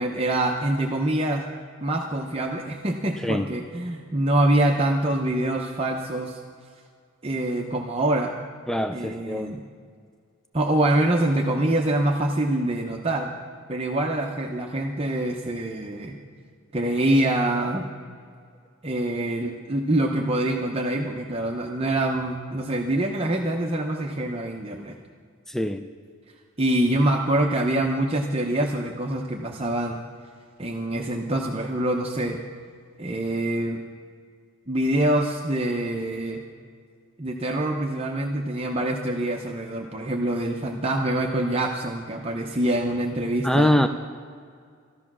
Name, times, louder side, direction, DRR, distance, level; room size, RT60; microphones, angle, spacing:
voice 1, 0.0-1.4 1.8-6.4 7.2-8.3 8.9-9.6 10.5-13.3 13.7-16.2 16.7-17.9 18.8-24.9 26.6-30.0 30.6-32.4 33.0-33.8 34.7-36.4 37.2-43.7, right 1 dB, 25° right, 1 dB, 0.7 m, -25 dB
voice 2, 8.7-9.5 25.5-25.8 43.4-43.9, left 1 dB, ahead, 7 dB, 0.3 m, -23 dB
13.5 x 12.0 x 6.1 m, 2.1 s
head